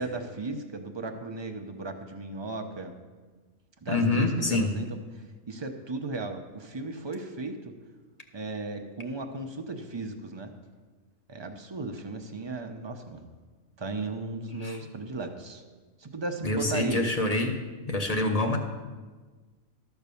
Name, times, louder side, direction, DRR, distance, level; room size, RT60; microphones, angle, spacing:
voice 1, 0.0-2.9 3.8-4.9 5.2-7.7 8.3-10.5 11.3-13.2 13.8-15.6 16.0-17.0, right 3 dB, 30° right, 5 dB, 0.6 m, -36 dB
voice 2, 3.9-4.7 14.6-14.8 16.4-17.5 17.9-18.6, left 2 dB, 30° left, 3 dB, 0.9 m, -26 dB
13.0 x 4.6 x 6.9 m, 1.4 s
omnidirectional pair, 1.4 m